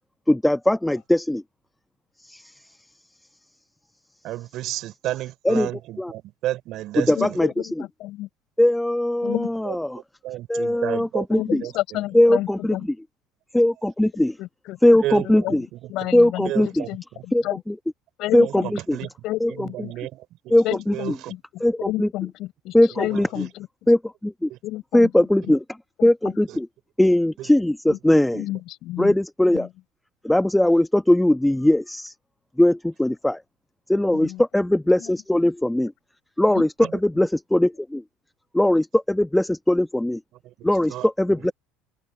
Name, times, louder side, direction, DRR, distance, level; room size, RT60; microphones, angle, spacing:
voice 1, 0.3-1.4 2.2-2.6 5.4-5.7 6.0-6.1 7.0-7.7 8.6-10.0 10.5-11.6 12.1-12.8 13.5-14.4 14.8-15.6 16.1-16.8 17.3-17.7 18.3-18.6 18.9-19.0 19.4-19.7 20.5-20.9 21.6-22.1 22.7-23.3 23.9-24.5 24.9-25.6 26.0-26.7 27.0-28.4 29.0-29.7 30.2-32.1 32.6-33.4 33.9-35.9 36.4-36.7 37.0-38.0 38.5-40.2 40.6-41.5, left 1 dB, 5° left, 1.1 m, -20 dB
voice 2, 4.2-7.4 9.6-9.8 10.2-11.3 11.6-12.0 15.0-15.6 15.8-16.1 16.4-17.2 18.4-19.1 19.5-20.5 20.9-21.3 22.9-23.5 24.5-24.6 26.5-26.6 27.4-27.5 36.8-37.0 40.4-41.1, right 15 dB, 55° right, 5.8 m, -32 dB
voice 3, 7.1-8.3 9.2-9.5 11.3-12.9 14.4-14.8 15.2-16.5 16.9-17.6 18.2-18.7 19.0-19.9 20.6-21.4 21.8-23.9 24.6-25.1 25.5-25.6 26.0-26.3 27.9-28.0 28.3-29.1 29.5-29.7 34.1-34.4 35.0-35.1 36.5-36.7, left 16 dB, 60° left, 7.3 m, -31 dB
open air
hypercardioid pair, 75°, 0 cm